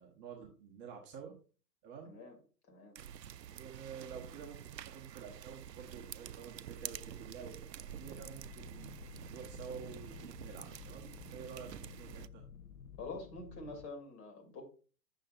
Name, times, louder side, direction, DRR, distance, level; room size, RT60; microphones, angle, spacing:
voice 1, 0.0-1.3 1.8-2.1 3.5-4.6 4.8-9.0 9.3-12.4, right 6 dB, 20° right, 0 dB, 1.3 m, -49 dB
voice 2, 2.0-2.4 2.7-2.9 13.0-14.6, left 3 dB, 25° left, 2 dB, 2.9 m, -46 dB
sound 1, 3.0-12.3, right 10 dB, 85° right, 0.6 m, -48 dB
sound 2, 8.0-13.9, left 8 dB, 55° left, 1.1 m, -53 dB
9.0 x 7.0 x 2.6 m, 0.37 s
figure-of-eight pair, 120°, 49 cm